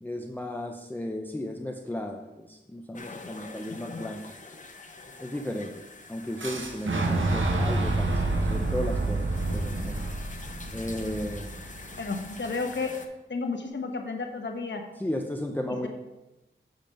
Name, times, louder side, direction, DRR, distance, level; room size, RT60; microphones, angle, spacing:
voice 1, 0.0-4.2 5.2-10.0 10.7-11.6 15.0-15.9, left 1 dB, 10° left, 2 dB, 0.6 m, -35 dB
sound 1, 2.9-13.1, left 3 dB, 40° left, 0.8 m, -45 dB
Boom, 6.4-12.3, right 2 dB, 75° right, 1.0 m, -28 dB
voice 2, 11.9-12.9 13.3-14.8 15.7-15.9, left 3 dB, 65° left, 4 dB, 1.1 m, -32 dB
7.5 x 5.2 x 5.2 m, 1.0 s
wide cardioid pair, 80°, 20 cm